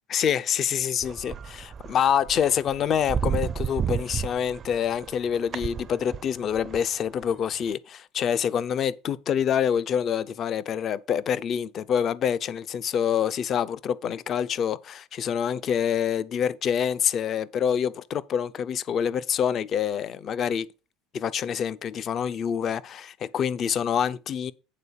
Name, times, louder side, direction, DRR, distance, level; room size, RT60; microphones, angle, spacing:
voice 1, 0.1-20.7 21.1-24.5, left 8 dB, 40° left, 0.5 m, -26 dB
sound 1, 1.0-6.8 7.2-7.3 7.7-7.8, right 7 dB, 30° right, 0.5 m, -32 dB
8.7 x 3.9 x 7.0 m
supercardioid pair, 130°, 0 cm